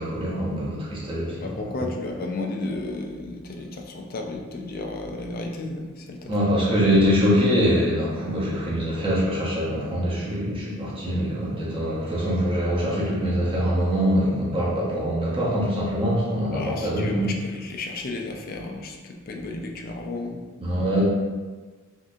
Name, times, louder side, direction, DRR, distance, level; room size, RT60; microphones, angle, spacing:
voice 1, 0.0-1.9 6.3-17.3 20.6-21.0, equal, 25° right, -7 dB, 0.7 m, -24 dB
voice 2, 1.4-6.3 16.5-20.4, left 2 dB, 45° left, 2 dB, 0.4 m, -33 dB
3.7 x 2.6 x 2.5 m, 1.4 s
head